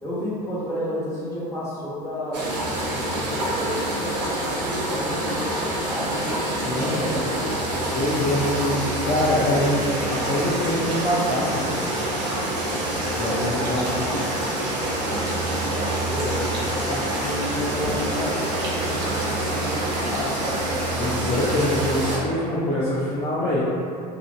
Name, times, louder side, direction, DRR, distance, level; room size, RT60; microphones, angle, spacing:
voice 1, 0.0-2.5 3.1-6.4 6.9-7.5 13.4-13.9 15.4-20.4, left 1 dB, 15° left, -11 dB, 1.3 m, -32 dB
sound 1, 2.3-22.2, right 1 dB, 85° right, 0.6 m, -26 dB
voice 2, 6.6-7.2 7.9-11.7 13.0-14.0 21.0-23.6, left 1 dB, 35° left, -8 dB, 0.5 m, -24 dB
2.6 x 2.4 x 2.4 m, 2.4 s
hypercardioid pair, 80°, 21 cm